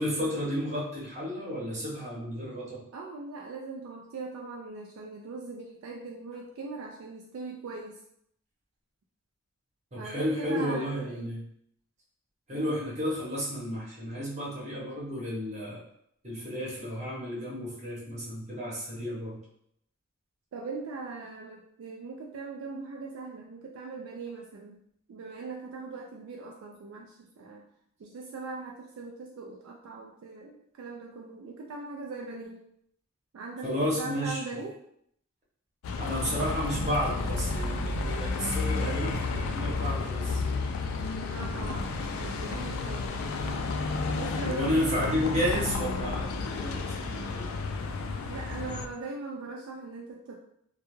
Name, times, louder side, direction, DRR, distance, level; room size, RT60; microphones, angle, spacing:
voice 1, 0.0-2.8 9.9-11.4 12.5-15.8 16.2-19.4 33.6-34.6 36.0-40.4 44.4-47.5, equal, 35° right, -6 dB, 0.9 m, -32 dB
voice 2, 2.9-8.0 9.9-11.4 12.5-12.7 20.5-24.8 25.1-27.6 28.0-32.6 33.3-34.8 38.7-39.8 41.3-41.9 42.2-43.1 44.1-45.0 48.3-50.4, right 3 dB, 70° right, 0 dB, 0.3 m, -40 dB
Bus, 35.8-48.9, left 3 dB, 75° left, 0.3 m, -31 dB
2.2 x 2.2 x 3.0 m, 0.71 s
head